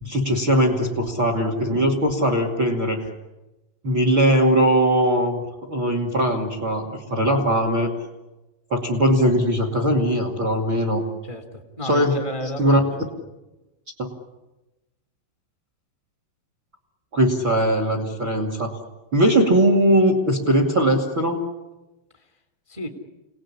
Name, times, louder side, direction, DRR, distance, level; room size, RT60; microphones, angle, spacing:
voice 1, 0.0-3.1 3.8-5.4 5.7-7.9 8.7-11.0 11.8-12.1 12.6-12.8 14.0-14.1 17.1-18.8 19.1-21.4, right 1 dB, 35° right, 4 dB, 2.1 m, -20 dB
voice 2, 11.2-12.9 22.1-22.3 22.7-22.9, left 1 dB, 10° right, 5 dB, 1.5 m, -33 dB
29.0 x 19.0 x 9.9 m, 1.0 s
omnidirectional pair, 5.9 m